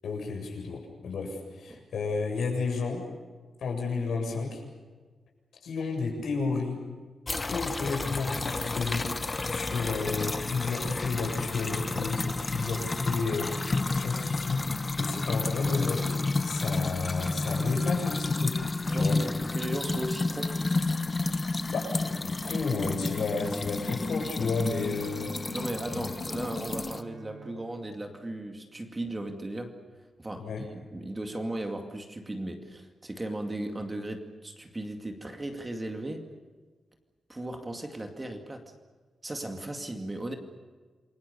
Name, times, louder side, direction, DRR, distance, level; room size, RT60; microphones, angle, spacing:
voice 1, 0.0-3.0 3.6-4.6 5.6-6.8 7.4-9.1 9.5-16.1 16.4-18.6 18.9-19.2 21.7-25.3 30.4-30.6, left 4 dB, 75° left, 2 dB, 7.5 m, -32 dB
sound 1, 7.3-27.0, left 3 dB, 20° left, 1.0 m, -31 dB
voice 2, 18.9-20.6 25.5-36.2 37.3-38.7 39.2-40.3, right 1 dB, 15° right, 5 dB, 2.4 m, -37 dB
Bowed string instrument, 24.2-29.5, right 5 dB, 75° right, 6.3 m, -51 dB
28.0 x 23.5 x 7.0 m, 1.4 s
wide cardioid pair, 175°, 0 cm